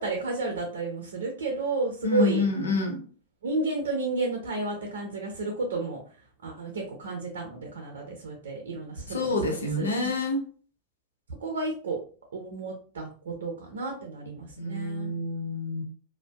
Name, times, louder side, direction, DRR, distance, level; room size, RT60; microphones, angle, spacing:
voice 1, 0.0-2.4 3.4-6.0 6.4-9.2 9.4-10.1 11.4-12.0 12.3-15.2, right 3 dB, 80° right, 2 dB, 0.5 m, -32 dB
voice 2, 2.0-3.0 9.1-10.4 14.6-15.8, left 2 dB, 90° left, 2 dB, 0.7 m, -27 dB
2.5 x 2.1 x 2.3 m, 0.41 s
hypercardioid pair, 100°, 0 cm